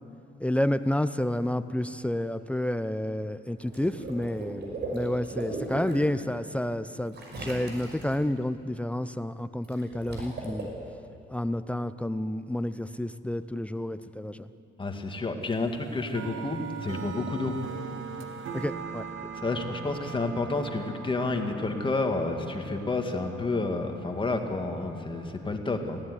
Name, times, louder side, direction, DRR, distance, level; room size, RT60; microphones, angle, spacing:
voice 1, 0.4-10.7 11.3-14.5 18.5-19.1, left 1 dB, 5° left, 13 dB, 0.6 m, -30 dB
Water / Liquid, 3.6-6.1 7.1-8.2 9.6-10.6, right 2 dB, 55° right, 5.8 m, -37 dB
voice 2, 14.8-17.6 19.4-26.0, left 3 dB, 25° left, 4 dB, 2.3 m, -30 dB
sound 1, 15.5-25.3, right 6 dB, 80° right, 2.1 m, -41 dB
19.0 x 16.0 x 9.9 m, 2.7 s
cardioid pair, 90°, 20 cm